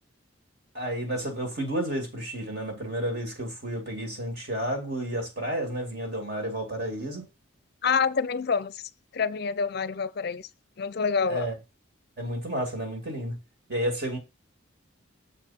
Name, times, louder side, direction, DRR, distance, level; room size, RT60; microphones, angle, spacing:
voice 1, 0.7-7.3 11.3-11.5 12.2-13.4 13.7-14.2, right 1 dB, 50° right, 2.6 m, -31 dB
voice 2, 7.8-8.8 9.1-10.5 10.8-11.5, left 5 dB, 50° left, 0.5 m, -27 dB
6.8 x 4.8 x 4.3 m
head